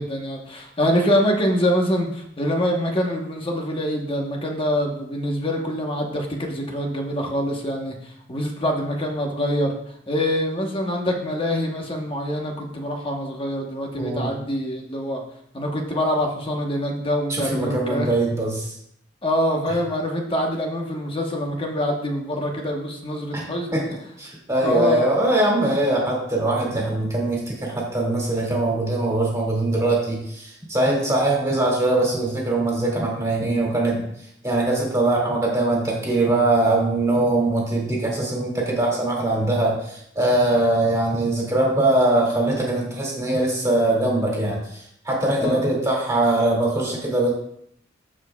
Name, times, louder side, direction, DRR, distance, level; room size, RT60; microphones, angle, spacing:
voice 1, 0.0-9.7 10.1-15.2 15.5-18.1 19.2-23.8 24.6-25.1 45.4-45.7, equal, 30° left, 1 dB, 1.1 m, -25 dB
voice 2, 14.0-14.3 17.3-18.7 23.3-23.4 23.7-23.8 24.2-34.0 34.4-47.3, right 2 dB, 15° right, -3 dB, 2.4 m, -22 dB
14.5 x 5.0 x 2.4 m, 0.71 s
head